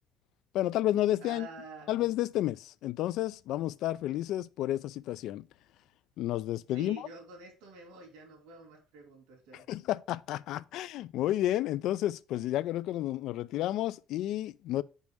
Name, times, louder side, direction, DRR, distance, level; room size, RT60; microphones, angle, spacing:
voice 1, 0.5-1.5 1.9-5.4 6.2-7.1 9.5-14.8, left 14 dB, 60° left, 0.3 m, -31 dB
voice 2, 1.2-1.9 6.7-9.6, right 3 dB, 85° right, 2.7 m, -48 dB
5.4 x 5.3 x 4.5 m
cardioid pair, 160°, 0 cm